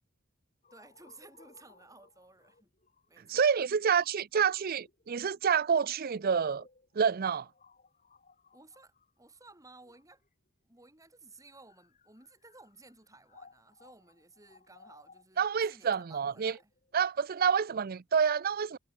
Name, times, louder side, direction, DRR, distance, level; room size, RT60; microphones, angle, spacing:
sound 1, 0.6-10.5 11.2-18.2, left 4 dB, 35° left, 3.0 m, -63 dB
voice 1, 0.7-2.7 3.1-3.5 8.5-10.2 10.6-16.7, right 3 dB, 15° right, 4.0 m, -56 dB
voice 2, 3.3-6.6 6.9-7.5 15.4-16.5 16.9-18.8, right 6 dB, 45° right, 0.5 m, -28 dB
head